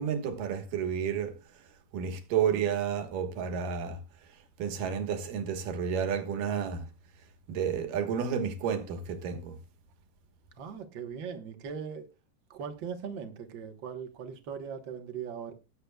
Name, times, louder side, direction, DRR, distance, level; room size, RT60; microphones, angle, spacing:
voice 1, 0.0-1.3 1.9-4.0 4.6-6.9 7.5-9.6, right 7 dB, 80° right, 3.0 m, -31 dB
voice 2, 10.6-12.1 12.5-15.5, right 7 dB, 60° right, 1.3 m, -39 dB
19.5 x 8.1 x 2.3 m
omnidirectional pair, 3.8 m